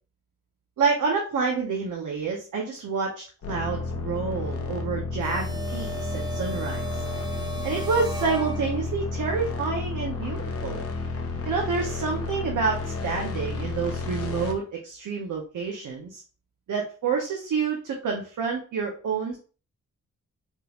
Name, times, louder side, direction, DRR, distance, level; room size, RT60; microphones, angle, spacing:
voice 1, 0.8-7.0 7.6-10.8 11.4-16.2 16.7-19.4, right 5 dB, 75° right, 0 dB, 0.7 m, -28 dB
sound 1, 3.4-14.5, left 3 dB, 50° left, 0.6 m, -31 dB
sound 2, 5.2-9.1, right 2 dB, 15° right, 0.4 m, -37 dB
3.6 x 2.4 x 2.9 m, 0.38 s
wide cardioid pair, 145°, 31 cm